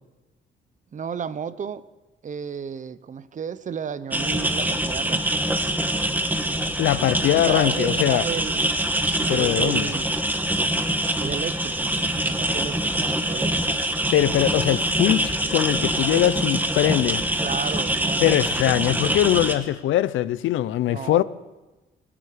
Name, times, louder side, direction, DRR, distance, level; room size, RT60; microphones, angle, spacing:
voice 1, 0.9-1.9 2.2-5.2 7.4-10.2 11.2-13.8 16.0-16.5 17.4-18.9 20.8-21.2, right 7 dB, 40° right, 0.8 m, -33 dB
sound 1, 4.1-19.6, right 1 dB, 10° right, 1.5 m, -24 dB
voice 2, 6.8-8.2 9.3-9.9 14.1-17.2 18.2-21.2, left 13 dB, 80° left, 0.7 m, -21 dB
26.5 x 8.9 x 5.0 m
cardioid pair, 90°, 20 cm